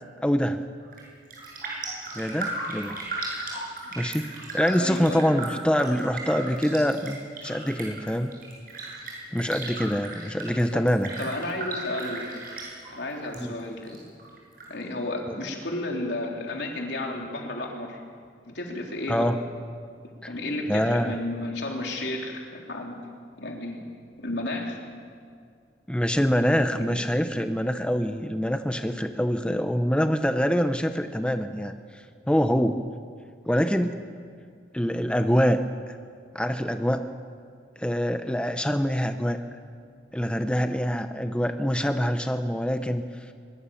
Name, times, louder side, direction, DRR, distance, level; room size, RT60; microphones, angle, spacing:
voice 1, 0.2-0.6 2.2-3.0 3.9-4.3 4.5-8.3 9.3-11.1 13.4-13.5 15.3-15.4 19.1-19.4 20.2-20.3 20.7-21.2 25.9-31.8 32.3-32.8 33.5-34.0 34.7-35.6 36.3-37.1 37.8-39.4 40.1-43.0, equal, 5° left, 7 dB, 0.8 m, -25 dB
Raindrop, 0.8-1.1 1.3-13.4 13.7-14.7 15.0-15.1, right 2 dB, 55° right, 7.8 m, -36 dB
voice 2, 4.7-5.3 10.7-10.8 11.2-12.3 12.9-14.0 14.7-18.0 18.5-19.3 20.3-23.0 23.4-23.8 24.2-24.8 26.7-26.9 27.2-27.3, left 1 dB, 75° left, 0 dB, 3.7 m, -32 dB
23.0 x 22.0 x 7.2 m, 2.1 s
head